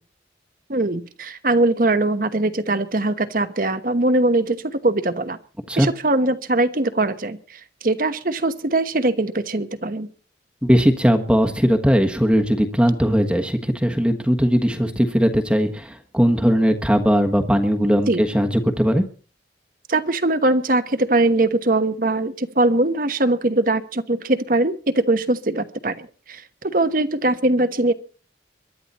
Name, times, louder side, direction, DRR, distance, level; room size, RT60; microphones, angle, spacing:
voice 1, 0.7-5.4 5.8-10.1 18.1-18.2 19.9-27.9, right 2 dB, 50° right, 10 dB, 1.1 m, -21 dB
voice 2, 10.6-19.0, equal, 5° right, 4 dB, 1.3 m, -19 dB
23.0 x 12.0 x 4.2 m, 0.40 s
head